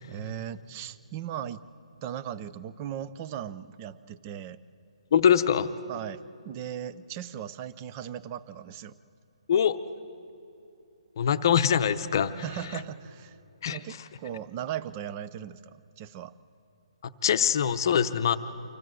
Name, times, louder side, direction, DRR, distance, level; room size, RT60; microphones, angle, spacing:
voice 1, 0.1-1.6 2.0-4.6 5.9-8.9 12.4-13.4 13.7-16.3, right 10 dB, 20° right, 15 dB, 0.4 m, -38 dB
voice 2, 5.1-5.7 9.5-9.8 11.2-12.4 13.6-13.8 17.0-18.4, left 8 dB, 40° left, 10 dB, 0.7 m, -23 dB
25.5 x 15.5 x 7.7 m, 2.8 s
hypercardioid pair, 170°, 3 cm